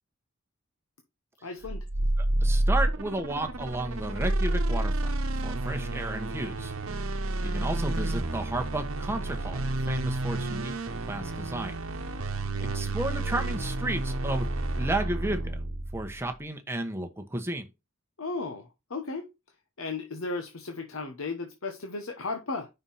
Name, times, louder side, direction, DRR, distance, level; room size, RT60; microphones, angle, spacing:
voice 1, 1.4-1.8 18.2-19.3 19.8-22.7, left 3 dB, 80° left, 1.0 m, -35 dB
sound 1, 1.6-16.2, right 2 dB, 85° right, 0.9 m, -30 dB
voice 2, 2.2-5.1 5.4-6.7 7.4-10.7 11.1-11.7 12.6-14.5 14.8-15.6 15.9-17.7, right 1 dB, 10° right, 1.0 m, -33 dB
5.6 x 4.4 x 5.5 m
head